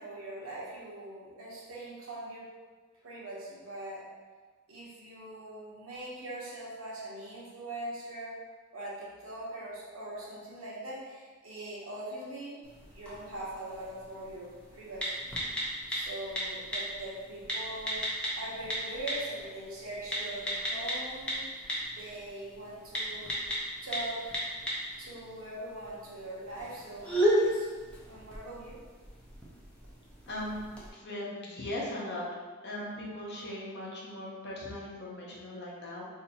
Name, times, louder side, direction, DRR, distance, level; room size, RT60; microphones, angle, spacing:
voice 1, 0.0-2.5 3.0-4.0 4.7-8.4 8.7-15.2 15.9-18.0 18.4-23.3 23.8-24.4 25.0-27.7 28.0-28.7, right 1 dB, 70° right, -6 dB, 1.0 m, -42 dB
sound 1, 12.6-30.9, equal, 5° left, 0.6 m, -35 dB
voice 2, 30.3-30.6 30.9-32.2 32.6-36.0, left 1 dB, 50° left, -4 dB, 0.8 m, -38 dB
2.8 x 2.6 x 4.1 m, 1.4 s
head